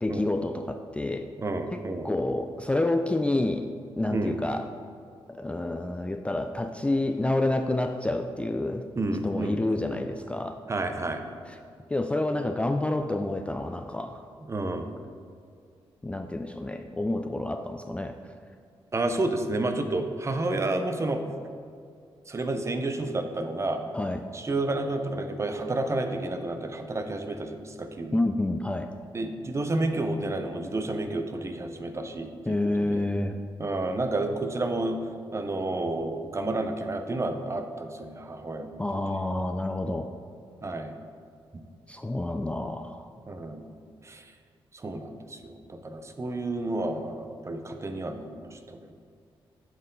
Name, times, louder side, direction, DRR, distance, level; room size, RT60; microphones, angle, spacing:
voice 1, 0.0-1.3 1.7-3.7 4.0-4.7 5.3-8.9 9.2-10.6 11.5-11.6 11.9-14.2 16.0-18.2 23.9-24.2 28.1-28.9 32.5-33.4 38.8-40.1 41.9-43.0, left 2 dB, 10° left, 6 dB, 0.3 m, -28 dB
voice 2, 1.4-2.1 4.1-4.4 9.0-9.6 10.7-11.2 14.5-14.9 18.9-21.2 22.3-23.9 24.3-28.2 29.1-33.1 33.6-35.0 35.3-38.8 40.6-40.9 41.5-41.6 43.3-43.7 44.0-44.2 44.8-48.9, right 2 dB, 30° right, 7 dB, 0.7 m, -30 dB
9.0 x 4.2 x 3.9 m, 2.3 s
cardioid pair, 75°, 10 cm